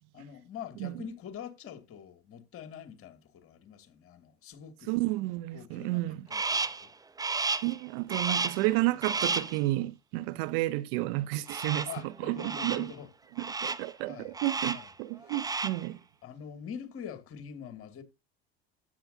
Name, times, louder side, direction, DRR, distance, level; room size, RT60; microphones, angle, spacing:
voice 1, 0.1-5.0 5.5-6.9 11.8-13.1 14.0-14.4 14.7-14.9 15.2-15.4 16.2-18.0, left 8 dB, 45° left, 2.4 m, -45 dB
voice 2, 4.9-6.2 7.6-11.9 12.2-12.9 13.6-16.0, right 18 dB, 65° right, 0.7 m, -31 dB
Crow, 6.3-6.9 7.2-7.8 8.1-8.7 9.0-9.6 11.5-12.0 12.4-12.9 13.4-13.9 14.3-14.9 15.2-15.9, right 4 dB, 10° right, 0.7 m, -32 dB
13.5 x 8.7 x 2.7 m
hypercardioid pair, 80°, 31 cm